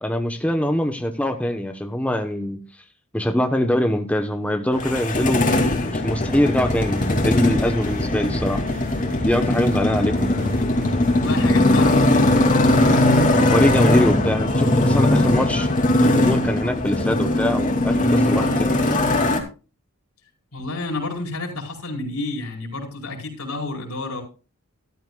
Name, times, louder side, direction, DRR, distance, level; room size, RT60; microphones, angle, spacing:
voice 1, 0.0-2.6 3.1-5.5 5.8-8.6 9.2-10.4 13.4-15.7 16.0-18.7, left 1 dB, 5° left, 6 dB, 0.9 m, -23 dB
Motorcycle, 4.7-19.4, left 1 dB, 40° left, 2.4 m, -19 dB
sound 1, 6.5-13.7, left 1 dB, 45° right, 5.7 m, -36 dB
voice 2, 11.1-12.6 20.5-24.2, left 2 dB, 75° left, 1 dB, 4.8 m, -30 dB
14.0 x 13.0 x 2.3 m, 0.33 s
head